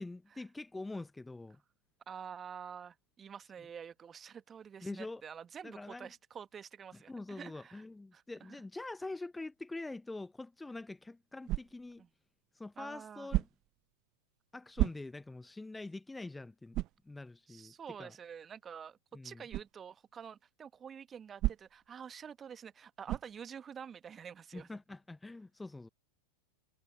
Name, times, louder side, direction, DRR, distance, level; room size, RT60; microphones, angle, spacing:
voice 1, 0.0-1.6 4.8-5.2 5.6-6.1 6.9-12.0 12.5-13.5 14.5-18.1 19.1-19.4 24.5-25.9, left 2 dB, 5° left, 0.8 m, -45 dB
voice 2, 2.1-7.8 8.1-8.2 12.0-12.1 12.8-13.3 17.5-24.7, right 7 dB, 20° right, 1.3 m, -48 dB
sound 1, 11.4-12.0 13.3-13.8 14.7-15.4 15.9-16.0 16.7-17.1 19.5-19.7 21.4-21.9 23.1-23.4, right 17 dB, 35° right, 0.6 m, -34 dB
figure-of-eight pair, 90°, 0 cm